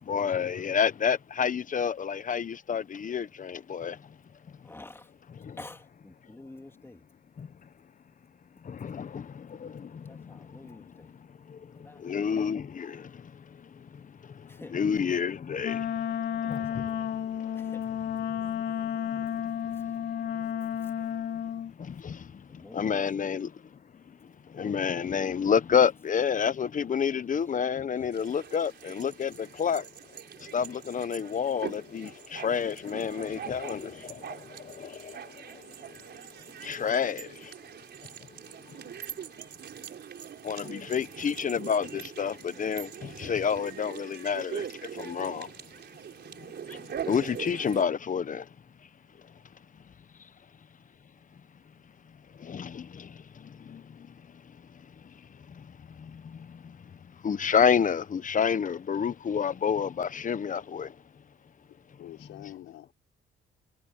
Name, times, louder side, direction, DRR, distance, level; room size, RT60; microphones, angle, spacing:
voice 1, 0.0-4.1 5.4-5.6 7.4-7.5 8.6-11.2 11.5-15.9 16.4-17.7 18.2-19.6 20.3-20.5 21.0-21.1 21.8-23.6 24.5-29.9 30.4-36.0 36.6-37.5 38.7-38.8 40.4-45.5 46.4-48.5 52.4-54.2 55.5-57.0 57.2-60.9, left 7 dB, 40° left, 1.0 m, -30 dB
voice 2, 4.6-5.1 5.6-7.0 10.1-11.1 11.7-12.3 14.5-14.8 16.3-17.1 17.5-17.8 19.7-19.9 22.5-23.4 28.0-28.1, left 2 dB, 10° left, 3.3 m, -49 dB
Wind instrument woodwind instrument, 15.6-21.7, left 9 dB, 65° left, 2.5 m, -32 dB
sound 1, 28.1-47.9, right 8 dB, 60° right, 4.5 m, -43 dB
voice 3, 61.7-62.9, left 13 dB, 80° left, 5.3 m, -46 dB
cardioid pair, 90°, 20 cm